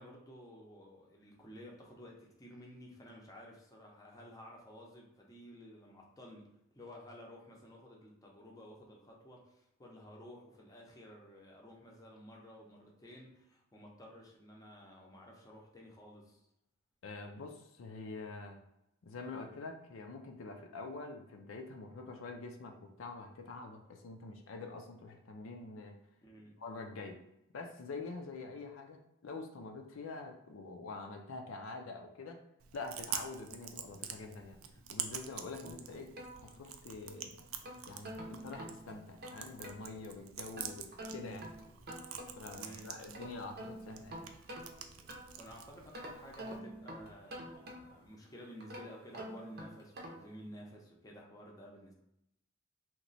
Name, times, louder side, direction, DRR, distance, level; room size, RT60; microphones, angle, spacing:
voice 1, 0.0-16.4 26.2-26.6 42.5-43.0 45.4-51.9, equal, 15° left, -2 dB, 0.6 m, -53 dB
voice 2, 17.0-18.6 19.0-26.0 26.6-27.2 27.5-32.4 32.7-34.6 34.9-36.1 36.4-37.4 37.9-41.5 42.4-44.4, left 3 dB, 75° left, 3 dB, 0.4 m, -46 dB
Chewing mastication, 32.6-46.6, right 9 dB, 90° right, 0.4 m, -47 dB
sound 1, 33.7-48.1, equal, 15° right, 0.8 m, -64 dB
sound 2, 35.6-37.0 37.4-39.9 40.6-42.6 42.9-45.5 45.9-48.1 48.6-50.4, right 1 dB, 50° right, 0.6 m, -48 dB
3.0 x 2.1 x 3.9 m, 0.83 s
head